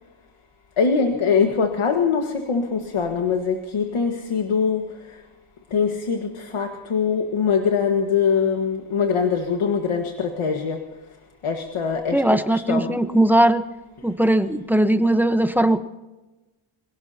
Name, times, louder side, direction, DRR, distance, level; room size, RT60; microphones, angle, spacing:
voice 1, 0.8-4.8 5.7-6.3 6.5-10.8 11.4-12.2 12.5-12.9, left 6 dB, 80° left, 4 dB, 1.8 m, -22 dB
voice 2, 12.1-13.6 14.0-15.8, right 1 dB, 5° right, 9 dB, 1.1 m, -19 dB
27.0 x 18.0 x 2.9 m, 1.1 s
wide cardioid pair, 90°, 50 cm